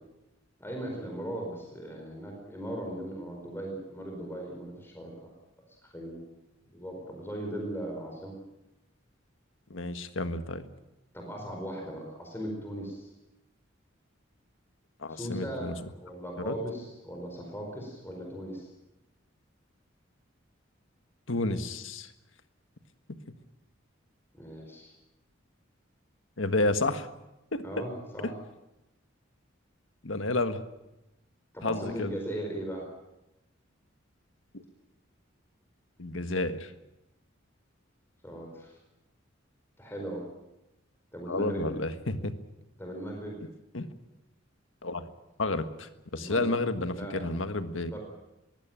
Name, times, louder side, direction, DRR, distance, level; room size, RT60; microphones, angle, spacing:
voice 1, 0.6-5.3 5.7-6.2 6.7-8.4 11.1-13.1 15.1-18.7 24.3-24.9 27.6-28.3 30.3-30.4 31.5-32.9 38.2-38.8 39.8-40.3 41.1-41.7 42.8-43.4 46.2-46.6 46.9-47.4 47.8-48.0, right 1 dB, 10° left, 0 dB, 4.6 m, -38 dB
voice 2, 9.7-10.6 15.0-15.7 16.4-16.5 21.3-22.1 26.4-27.1 27.5-27.8 30.0-30.6 31.6-32.1 34.5-34.6 36.0-36.7 41.3-42.3 43.7-43.9 44.8-45.0 45.4-47.9, left 2 dB, 80° left, 9 dB, 1.6 m, -30 dB
22.5 x 16.5 x 9.0 m, 0.93 s
head